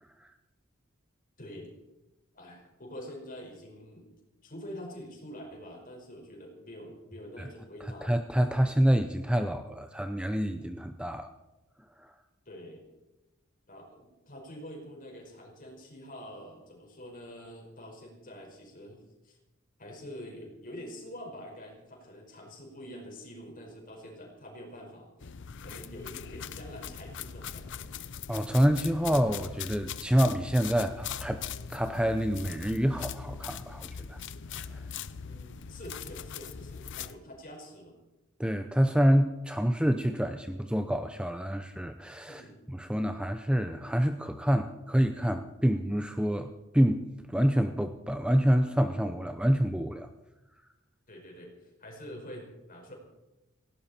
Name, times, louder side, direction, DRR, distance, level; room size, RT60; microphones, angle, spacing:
voice 1, 0.0-0.3 7.4-7.5 8.0-11.3 12.0-12.1 28.3-31.4 31.7-34.2 34.6-34.8 38.4-50.1, equal, 5° right, 8 dB, 0.6 m, -27 dB
voice 2, 1.4-1.7 2.3-4.1 4.4-8.2 12.5-12.9 13.7-19.4 19.8-25.4 25.6-27.9 35.2-37.9 42.3-42.6 51.1-52.9, equal, 40° left, 1 dB, 5.1 m, -46 dB
sound 1, 25.2-37.2, left 7 dB, 60° left, 0.6 m, -41 dB
18.5 x 16.5 x 4.4 m, 1.0 s
head